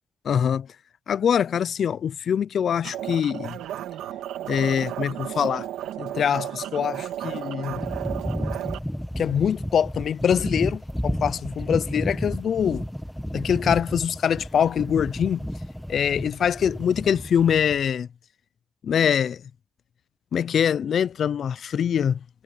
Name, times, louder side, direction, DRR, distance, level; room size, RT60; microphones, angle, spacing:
voice 1, 0.2-0.7 1.1-3.6 4.5-5.7 6.0-7.8 9.2-12.8 13.3-15.4 15.9-18.1 18.8-19.4 20.3-22.2, left 8 dB, 55° left, 0.5 m, -24 dB
sound 1, 2.8-8.8, right 12 dB, 85° right, 1.9 m, -33 dB
sound 2, 7.7-17.9, equal, ahead, 1.6 m, -32 dB
cardioid pair, 90°, 0 cm